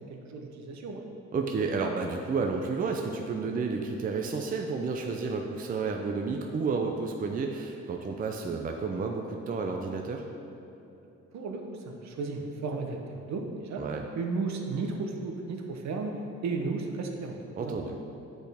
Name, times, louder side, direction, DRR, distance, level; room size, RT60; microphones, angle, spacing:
voice 1, 0.1-1.0 11.3-13.8 14.1-16.1 16.4-17.7, right 4 dB, 65° right, 3 dB, 0.8 m, -34 dB
voice 2, 1.3-10.2 13.8-14.0 17.6-18.0, right 4 dB, 30° right, 2 dB, 0.5 m, -31 dB
7.9 x 4.3 x 3.4 m, 2.9 s
cardioid pair, 90°, 30 cm